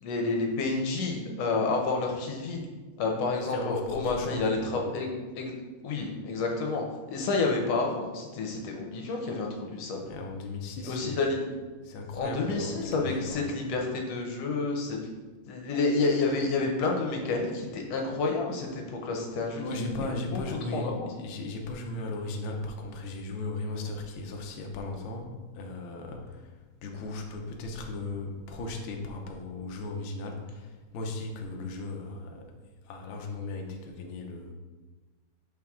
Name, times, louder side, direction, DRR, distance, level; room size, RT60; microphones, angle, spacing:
voice 1, 0.0-2.6 3.0-5.5 5.8-10.0 10.8-11.4 12.1-15.0 15.5-19.8 20.3-21.1, left 3 dB, 70° left, 1 dB, 1.7 m, -29 dB
voice 2, 3.5-4.5 4.8-5.0 10.0-11.2 11.8-13.5 19.6-32.5 32.8-34.5, left 2 dB, 85° left, 1 dB, 1.1 m, -37 dB
6.2 x 4.7 x 3.6 m, 1.3 s
omnidirectional pair, 3.4 m